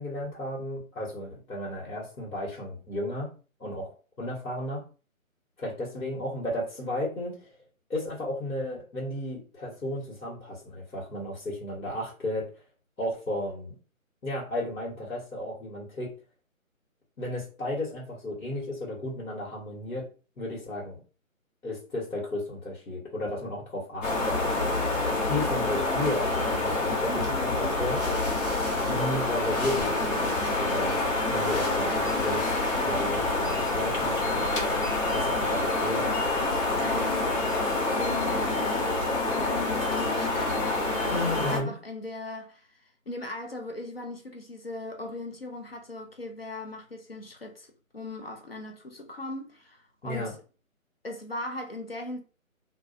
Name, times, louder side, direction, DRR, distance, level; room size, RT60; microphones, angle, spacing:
voice 1, 0.0-3.3 3.6-4.8 5.6-7.5 7.9-12.5 13.0-13.7 14.2-16.1 17.2-20.1 20.4-21.0 21.6-24.3 25.3-28.5 28.9-31.0 31.3-32.5 32.8-34.5 35.1-36.1 41.1-41.7 50.0-50.3, left 1 dB, 85° left, 1.3 m, -34 dB
sound 1, 24.0-41.6, left 2 dB, 65° left, 1.0 m, -27 dB
sound 2, 27.9-33.5, left 2 dB, 30° left, 0.9 m, -43 dB
voice 2, 36.8-38.9 39.2-50.4 51.0-52.2, left 2 dB, 45° left, 0.4 m, -39 dB
2.3 x 2.3 x 2.5 m
figure-of-eight pair, 155°, 42 cm